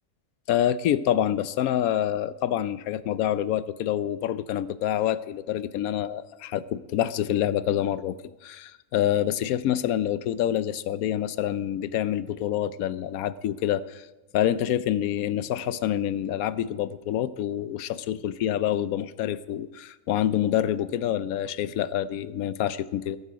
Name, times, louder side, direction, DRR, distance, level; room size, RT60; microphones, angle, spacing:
voice 1, 0.5-8.2 8.4-14.1 14.3-23.2, left 11 dB, 90° left, 16 dB, 1.1 m, -27 dB
20.5 x 8.2 x 5.1 m, 1.0 s
omnidirectional pair, 1.5 m